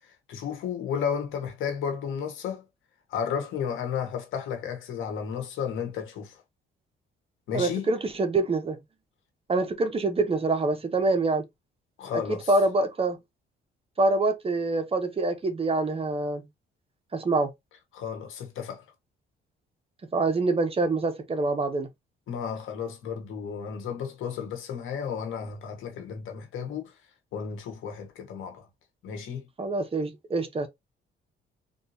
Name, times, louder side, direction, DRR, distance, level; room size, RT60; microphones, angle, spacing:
voice 1, 0.3-2.6 3.1-6.4 7.5-7.9 12.0-12.5 17.9-18.8 22.3-26.9 27.3-28.7 29.0-29.4, left 7 dB, 80° left, 1.2 m, -33 dB
voice 2, 7.5-8.8 9.5-11.4 12.1-12.2 12.5-13.2 14.0-16.4 17.1-17.5 20.1-21.9 29.6-30.7, right 3 dB, 30° right, 0.8 m, -25 dB
3.6 x 2.7 x 2.7 m
cardioid pair, 90°, 20 cm